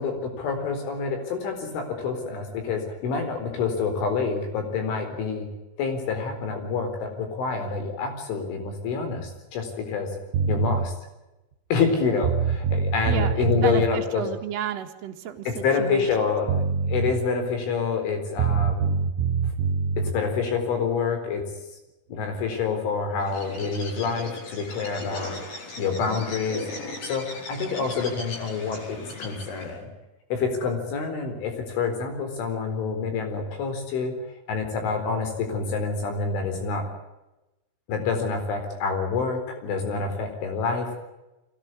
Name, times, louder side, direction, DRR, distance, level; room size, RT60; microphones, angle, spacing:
voice 1, 0.0-5.5 5.8-10.1 10.5-10.9 11.7-14.2 15.5-16.5 16.9-18.9 20.1-21.4 22.1-29.9 30.3-34.1 34.5-36.8 37.9-40.9, left 5 dB, 65° left, 6 dB, 6.5 m, -27 dB
sound 1, 10.3-10.9 11.9-12.0 12.2-13.9 16.1-16.2 16.5-17.1 18.4-20.1, right 5 dB, 65° right, 3.9 m, -24 dB
voice 2, 13.1-16.1, right 10 dB, 90° right, 3 dB, 1.4 m, -32 dB
Bird, 23.2-29.8, left 2 dB, 45° left, 5.8 m, -38 dB
23.5 x 17.5 x 9.9 m, 1.0 s
omnidirectional pair, 6.0 m